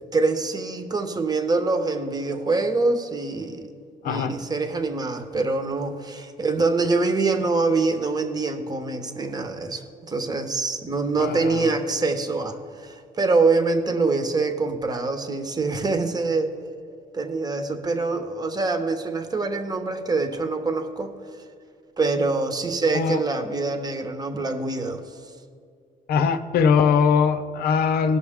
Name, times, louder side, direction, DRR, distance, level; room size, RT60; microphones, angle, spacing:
voice 1, 0.1-3.7 4.0-16.6 17.1-21.1 22.0-25.0, right 3 dB, 25° right, 6 dB, 1.0 m, -25 dB
voice 2, 4.0-4.3 11.2-11.7 22.9-23.2 26.1-28.2, left 6 dB, 65° left, 8 dB, 0.8 m, -21 dB
17.5 x 6.0 x 3.6 m, 2.3 s
cardioid pair, 110°, 17 cm